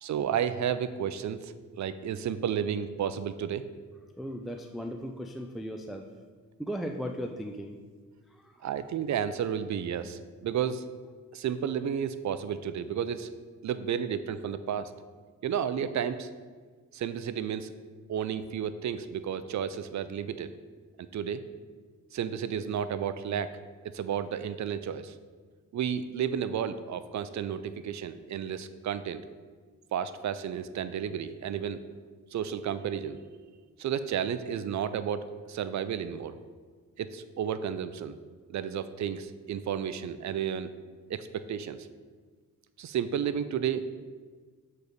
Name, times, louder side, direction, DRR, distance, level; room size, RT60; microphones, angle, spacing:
voice 1, 0.0-3.7 8.6-10.8 11.3-13.3 13.6-14.9 15.4-16.3 16.9-17.7 18.1-20.5 21.0-21.4 22.1-23.5 23.8-25.1 25.7-29.2 29.9-31.8 32.3-33.2 33.8-36.4 37.0-38.2 38.5-40.7 41.1-41.9 42.8-44.0, right 8 dB, 60° right, 12 dB, 0.5 m, -32 dB
voice 2, 4.2-6.1 6.6-7.8 8.3-8.5, equal, ahead, 4 dB, 0.4 m, -37 dB
6.6 x 4.1 x 5.1 m, 1.5 s
cardioid pair, 75°, 33 cm